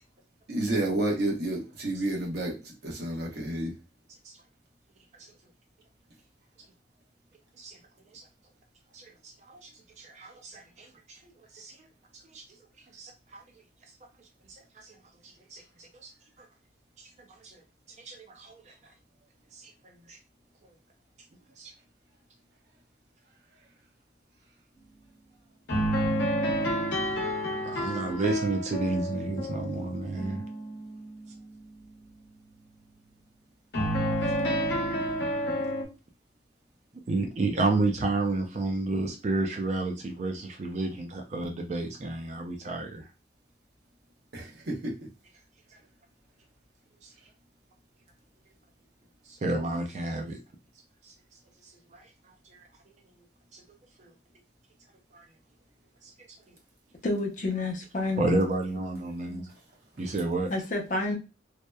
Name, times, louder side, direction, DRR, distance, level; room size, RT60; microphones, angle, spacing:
voice 1, 0.5-3.7 44.3-45.0, right 1 dB, 65° right, -1 dB, 0.8 m, -30 dB
voice 2, 8.9-9.7 10.0-11.2 11.5-11.9 12.2-12.4 12.9-13.4 14.5-15.0 15.2-16.1 16.4-16.5 17.0-17.1 17.4-17.6 18.0-18.9 19.5-19.7 20.1-20.2 21.6-21.7 27.6-30.4 37.1-43.1 47.0-47.1 49.3-50.4 51.0-51.1 51.6-52.1 52.5-52.6 53.5-53.6 54.0-54.1 55.1-55.3 56.0-56.1 58.2-59.5 60.0-60.5, right 2 dB, 40° right, 4 dB, 0.4 m, -31 dB
sound 1, 25.7-31.0 33.7-35.8, equal, 80° left, 0.8 m, -29 dB
voice 3, 57.0-58.5 60.5-61.2, left 2 dB, 45° left, 1 dB, 0.6 m, -29 dB
2.8 x 2.0 x 2.2 m, 0.29 s
head